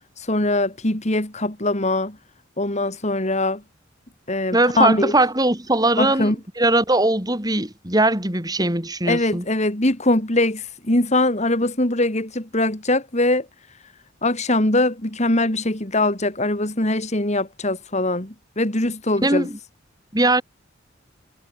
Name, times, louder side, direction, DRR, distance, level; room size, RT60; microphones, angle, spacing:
voice 1, 0.2-2.2 2.6-3.6 4.3-5.1 6.0-6.3 9.0-13.5 14.2-19.5, left 2 dB, 35° left, 3.3 m, -22 dB
voice 2, 4.5-9.4 19.2-19.6 20.1-20.4, right 2 dB, 20° right, 5.8 m, -20 dB
head